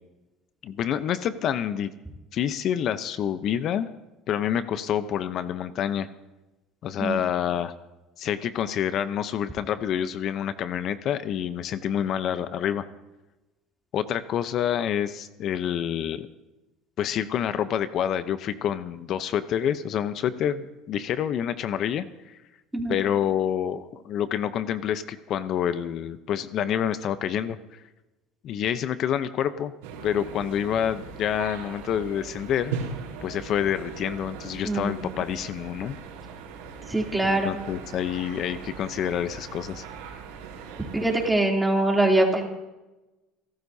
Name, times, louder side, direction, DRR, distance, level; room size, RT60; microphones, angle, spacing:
voice 1, 0.6-1.9 2.3-3.9 4.3-6.1 6.8-7.7 8.2-12.9 13.9-16.3 17.0-22.4 22.9-27.8 28.4-29.7 30.0-32.8 33.2-35.9 37.2-39.8, left 9 dB, 55° left, 12 dB, 0.7 m, -27 dB
sound 1, 29.8-41.3, right 6 dB, 90° right, 4.1 m, -39 dB
voice 2, 34.6-35.1 36.9-37.6 40.9-42.5, right 2 dB, 10° right, 0 dB, 3.1 m, -23 dB
29.0 x 13.0 x 2.8 m, 1.0 s
supercardioid pair, 90°, 0 cm